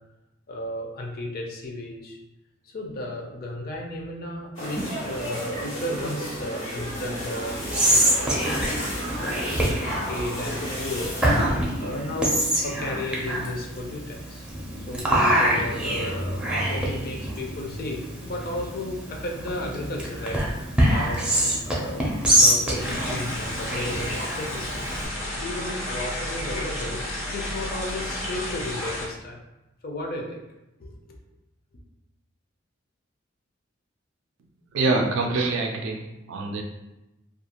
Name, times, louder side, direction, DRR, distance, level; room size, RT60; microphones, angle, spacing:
voice 1, 0.5-2.2 2.6-7.6 7.9-8.4 9.2-11.5 11.8-14.5 14.8-21.3 21.7-24.9 25.4-29.4 29.8-30.4 30.8-31.1, left 1 dB, 50° left, 0 dB, 0.5 m, -34 dB
sound 1, 4.6-11.4, equal, 90° left, 1.1 m, -32 dB
Whispering, 7.5-25.1, equal, 5° right, 0.4 m, -25 dB
sound 2, 22.8-29.1, left 1 dB, 65° left, 0.9 m, -32 dB
voice 2, 34.7-36.6, right 3 dB, 65° right, 2 dB, 0.3 m, -25 dB
2.4 x 2.3 x 2.8 m, 0.95 s
head